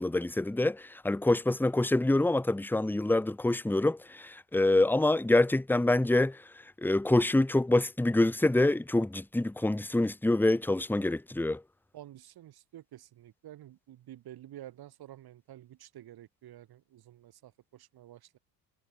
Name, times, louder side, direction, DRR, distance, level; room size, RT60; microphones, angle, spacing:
voice 1, 0.0-6.4 6.8-11.6, left 2 dB, 5° left, 1.4 m, -26 dB
voice 2, 11.9-18.4, right 13 dB, 50° right, 3.2 m, -50 dB
hypercardioid pair, 75°, 49 cm